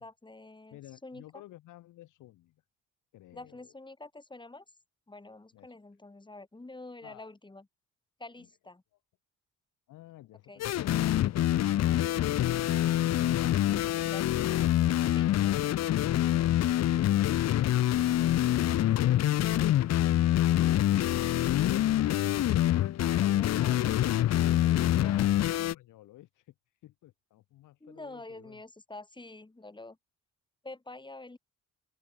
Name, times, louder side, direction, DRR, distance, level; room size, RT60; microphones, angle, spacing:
voice 1, 0.0-1.2 3.3-4.6 5.1-7.7 8.2-8.8 10.5-10.6 15.1-15.3 23.0-24.0 24.5-25.3 27.8-30.0 30.6-31.4, left 2 dB, 15° left, 4.8 m, -47 dB
voice 2, 0.7-2.6 3.1-3.7 5.5-5.7 7.0-7.3 8.3-8.5 9.9-13.0 13.9-14.3 15.3-15.7 24.6-26.5 26.8-28.6, left 15 dB, 90° left, 4.5 m, -54 dB
sound 1, 10.6-25.7, left 13 dB, 60° left, 0.7 m, -26 dB
open air
cardioid pair, 90°, 30 cm